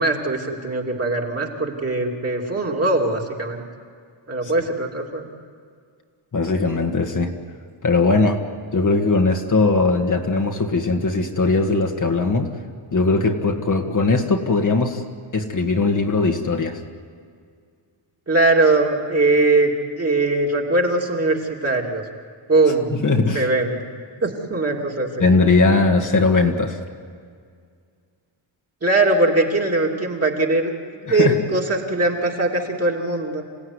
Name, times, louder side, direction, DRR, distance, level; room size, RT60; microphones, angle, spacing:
voice 1, 0.0-3.6 4.3-5.3 18.3-19.7 20.0-22.0 22.5-22.9 23.3-23.8 24.2-25.3 28.8-30.7 31.0-33.4, right 2 dB, 30° right, 0 dB, 2.7 m, -21 dB
voice 2, 6.3-7.3 7.8-8.4 8.7-12.5 12.9-15.0 15.3-16.8 22.9-23.5 25.2-26.8 31.1-31.4, left 3 dB, 40° left, 3 dB, 1.7 m, -19 dB
27.5 x 17.0 x 9.8 m, 2.1 s
wide cardioid pair, 135°, 49 cm